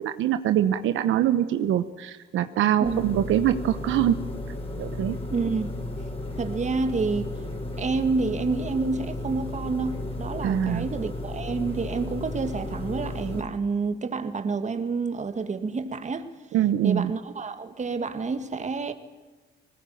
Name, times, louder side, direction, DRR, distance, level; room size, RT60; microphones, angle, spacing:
voice 1, 0.0-4.2 4.8-5.2 10.4-10.8 16.5-17.1, right 11 dB, 80° right, 10 dB, 1.0 m, -24 dB
sound 1, 2.8-13.4, left 1 dB, 30° left, 5.1 m, -34 dB
voice 2, 5.3-5.7 6.4-7.3 7.8-16.3 16.8-18.9, right 4 dB, 35° right, 8 dB, 1.9 m, -28 dB
20.0 x 19.5 x 9.3 m, 1.3 s
cardioid pair, 90°, 20 cm